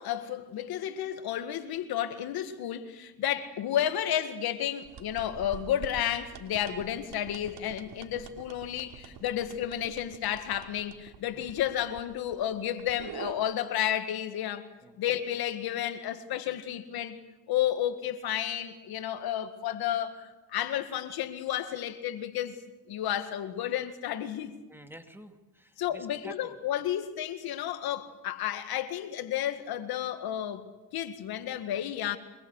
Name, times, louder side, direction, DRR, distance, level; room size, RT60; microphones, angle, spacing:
voice 1, 0.0-14.7 15.0-17.2 17.5-22.6 22.9-24.6 25.8-30.6 30.9-32.2, left 11 dB, 80° left, 1.9 m, -32 dB
sound 1, 4.8-13.3, right 8 dB, 80° right, 3.0 m, -47 dB
voice 2, 24.7-26.5, equal, 5° right, 2.5 m, -49 dB
25.0 x 21.5 x 8.2 m
cardioid pair, 90°, 37 cm